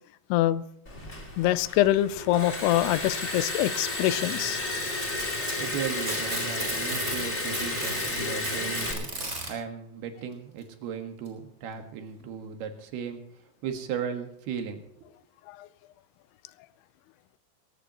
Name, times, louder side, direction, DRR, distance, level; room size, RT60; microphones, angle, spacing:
voice 1, 0.3-0.6 1.4-4.6 15.5-15.7, left 14 dB, 85° left, 16 dB, 2.7 m, -25 dB
Liquid, 0.9-8.9, left 2 dB, 20° left, 2.7 m, -32 dB
Packing tape duct tape, 4.9-7.3 7.5-9.5 10.6-10.7 11.3-11.4 12.2-12.3, right 2 dB, 20° right, 3.8 m, -35 dB
voice 2, 5.6-14.9, right 7 dB, 80° right, 5 dB, 3.6 m, -36 dB
20.0 x 17.5 x 3.0 m, 0.69 s
omnidirectional pair, 4.6 m